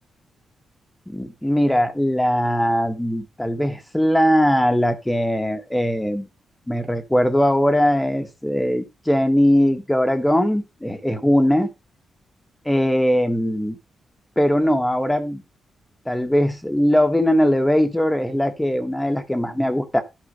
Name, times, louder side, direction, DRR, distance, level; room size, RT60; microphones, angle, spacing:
voice 1, 1.1-6.2 6.7-11.7 12.6-13.8 14.4-15.4 16.0-20.0, equal, 5° left, 1.4 m, -20 dB
11.5 x 4.6 x 5.4 m
cardioid pair, 115°, 0 cm